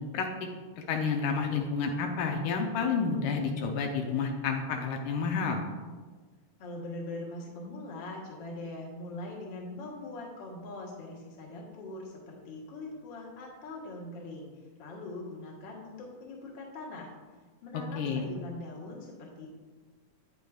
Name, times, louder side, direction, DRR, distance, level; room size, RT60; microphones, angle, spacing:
voice 1, 0.9-5.6 18.0-18.2, left 5 dB, 80° left, 2 dB, 2.1 m, -30 dB
voice 2, 6.6-14.5 14.8-17.1 17.6-19.5, left 2 dB, 50° left, -2 dB, 1.6 m, -42 dB
9.1 x 8.4 x 2.4 m, 1.4 s
omnidirectional pair, 3.7 m